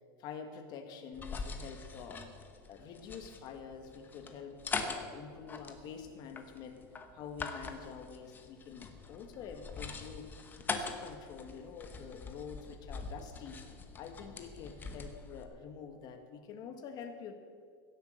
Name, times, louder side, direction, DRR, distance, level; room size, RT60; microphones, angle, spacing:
voice 1, 0.2-2.3 2.7-6.8 7.1-10.3 10.6-13.7 14.0-17.3, left 6 dB, 35° left, 6 dB, 1.6 m, -47 dB
sound 1, 1.1-15.5, left 4 dB, 15° left, 1.0 m, -43 dB
16.5 x 7.8 x 7.7 m, 2.1 s
supercardioid pair, 160°, 11 cm